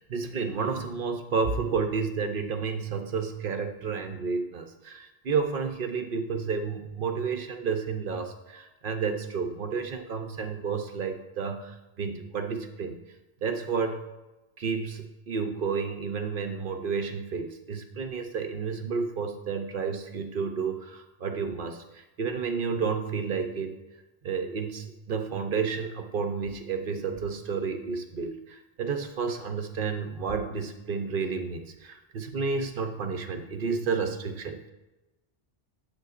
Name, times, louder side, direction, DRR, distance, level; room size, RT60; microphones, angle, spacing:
voice 1, 0.0-13.0 13.4-14.0 14.6-23.8 24.2-34.7, right 5 dB, 55° right, 6 dB, 0.8 m, -31 dB
9.5 x 7.9 x 2.5 m, 1.1 s
omnidirectional pair, 1.2 m